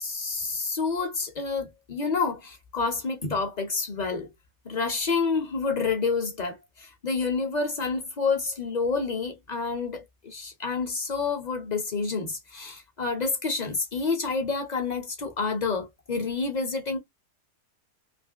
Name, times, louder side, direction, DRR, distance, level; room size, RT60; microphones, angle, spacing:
voice 1, 0.0-4.3 4.6-17.0, left 4 dB, 45° left, 0.6 m, -28 dB
3.2 x 2.7 x 2.7 m
omnidirectional pair, 1.6 m